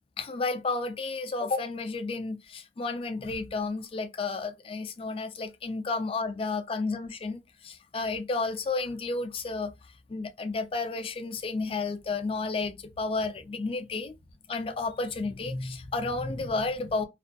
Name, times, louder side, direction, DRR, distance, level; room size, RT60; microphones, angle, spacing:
voice 1, 0.2-9.7 10.1-14.1 14.5-17.0, left 3 dB, 30° left, 0.3 m, -32 dB
2.4 x 2.2 x 2.5 m
head